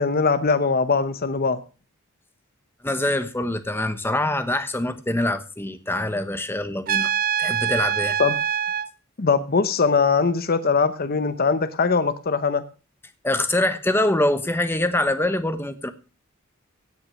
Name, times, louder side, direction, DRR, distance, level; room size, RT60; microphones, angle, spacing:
voice 1, 0.0-1.6 8.2-8.3 9.2-12.6, left 4 dB, 45° left, 0.8 m, -21 dB
voice 2, 2.8-7.1 7.4-8.2 13.2-15.9, left 1 dB, 10° left, 1.1 m, -24 dB
Trumpet, 6.9-8.9, right 9 dB, 40° right, 0.6 m, -24 dB
16.5 x 6.1 x 6.2 m
head